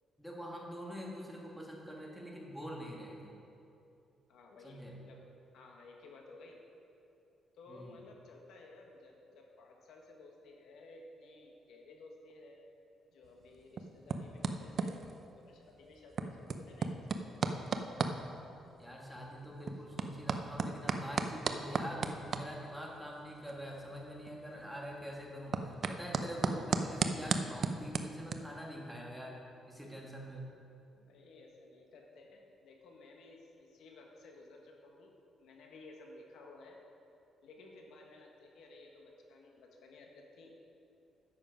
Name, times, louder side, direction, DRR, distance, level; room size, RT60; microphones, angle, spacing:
voice 1, 0.2-3.4 4.6-4.9 7.7-7.9 18.8-29.4 29.7-30.5, equal, ahead, -3 dB, 1.5 m, -45 dB
voice 2, 4.3-5.2 5.5-6.6 7.6-12.6 13.1-17.4 30.9-36.8 37.4-40.5, left 2 dB, 85° left, 1 dB, 1.3 m, -55 dB
sound 1, 13.2-28.3, right 4 dB, 45° right, 0.5 m, -38 dB
9.8 x 7.3 x 5.1 m, 2.7 s
cardioid pair, 145°, 0 cm